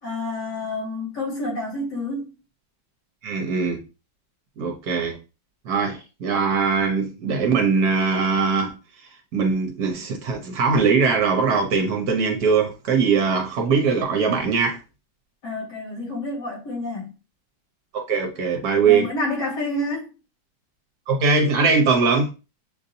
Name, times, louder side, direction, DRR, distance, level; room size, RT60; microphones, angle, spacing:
voice 1, 0.0-2.3 15.4-17.1 18.8-20.1, left 2 dB, 70° left, 2.7 m, -29 dB
voice 2, 3.2-3.8 4.6-5.2 5.6-8.7 9.3-14.8 17.9-19.1 21.1-22.3, right 5 dB, 65° right, 1.2 m, -21 dB
6.6 x 2.6 x 2.7 m
omnidirectional pair, 1.9 m